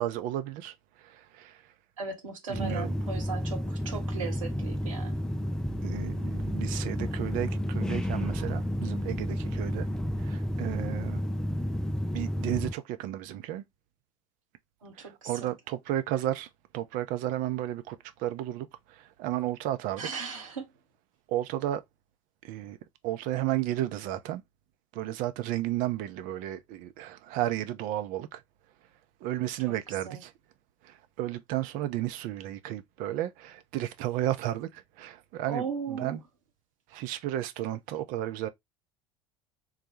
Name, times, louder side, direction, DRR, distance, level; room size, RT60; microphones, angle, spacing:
voice 1, 0.0-1.6 2.5-2.9 5.8-9.9 10.2-11.2 12.1-13.6 15.0-20.1 21.3-21.8 22.4-22.8 23.0-24.4 24.9-28.4 29.2-30.3 30.8-36.2 36.9-38.5, right 13 dB, 55° right, 0.7 m, -33 dB
voice 2, 2.0-5.2 14.8-15.5 20.0-20.7 30.0-30.2 35.4-36.2, right 5 dB, 80° right, 1.2 m, -37 dB
sound 1, 2.5-12.7, equal, 5° left, 0.4 m, -31 dB
4.0 x 2.3 x 4.3 m
figure-of-eight pair, 70°, 17 cm